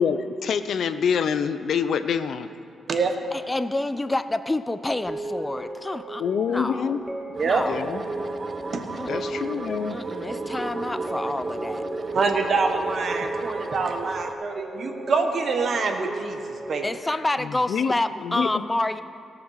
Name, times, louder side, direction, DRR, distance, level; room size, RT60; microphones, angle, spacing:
voice 1, 0.0-2.5 6.2-7.0 7.7-8.0 9.1-10.0 17.4-17.9 18.2-18.5, left 7 dB, 65° left, 11 dB, 0.6 m, -26 dB
voice 2, 3.3-6.2 6.5-6.9 7.4-7.8 9.0-9.4 9.9-11.8 16.8-19.0, left 2 dB, 15° left, 12 dB, 0.5 m, -28 dB
sound 1, 4.9-16.9, right 1 dB, 15° right, 1.5 m, -35 dB
sound 2, 7.3-14.3, right 3 dB, 35° right, 0.5 m, -34 dB
voice 3, 12.1-16.8, right 4 dB, 50° right, 5 dB, 1.2 m, -25 dB
17.0 x 6.0 x 6.5 m, 2.4 s
cardioid pair, 100°, 0 cm